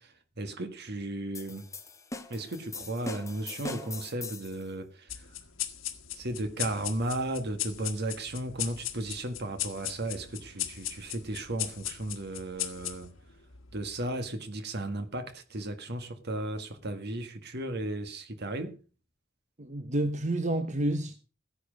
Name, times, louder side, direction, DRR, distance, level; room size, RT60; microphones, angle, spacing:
voice 1, 0.0-1.7 2.3-5.4 6.1-13.1 13.7-18.8, right 1 dB, 55° right, 1.7 m, -35 dB
sound 1, 1.3-4.6, left 3 dB, 15° left, 1.1 m, -41 dB
sound 2, 5.1-14.0, left 13 dB, 80° left, 1.6 m, -38 dB
voice 2, 19.6-21.2, right 1 dB, 35° right, 1.1 m, -29 dB
15.5 x 10.5 x 5.3 m
head